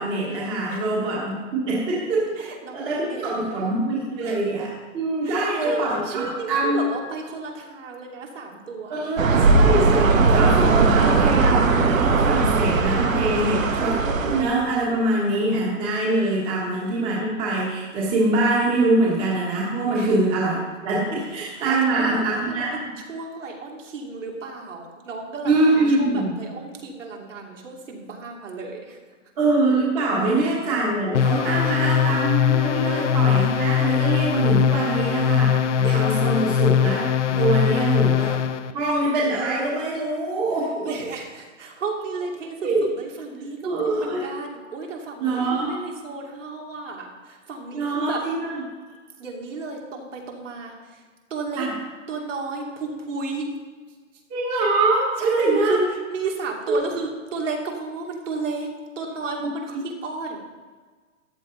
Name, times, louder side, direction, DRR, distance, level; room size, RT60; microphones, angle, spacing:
voice 1, 0.0-2.3 2.7-4.7 4.9-6.9 8.9-20.6 20.8-22.8 25.4-26.3 29.4-35.5 35.8-37.0 37.3-38.4 38.7-40.9 42.6-42.8 43.6-44.3 45.2-45.7 47.7-48.6 51.6-51.7 54.3-55.8 56.7-56.8 59.4-59.8, right 2 dB, 15° right, -5 dB, 1.4 m, -24 dB
voice 2, 2.4-3.6 4.2-4.4 5.2-9.1 13.3-13.7 19.9-20.1 21.2-29.0 30.2-30.4 31.6-31.9 32.9-33.0 35.8-36.2 37.4-37.5 40.6-48.2 49.2-51.0 51.3-51.7 52.1-53.5 55.2-60.4, right 4 dB, 70° right, 0 dB, 2.9 m, -33 dB
sound 1, 9.2-14.4, right 3 dB, 90° right, 1.6 m, -18 dB
sound 2, 31.1-38.7, left 8 dB, 65° left, 0.8 m, -21 dB
13.5 x 10.0 x 3.9 m, 1.4 s
hypercardioid pair, 175°, 39 cm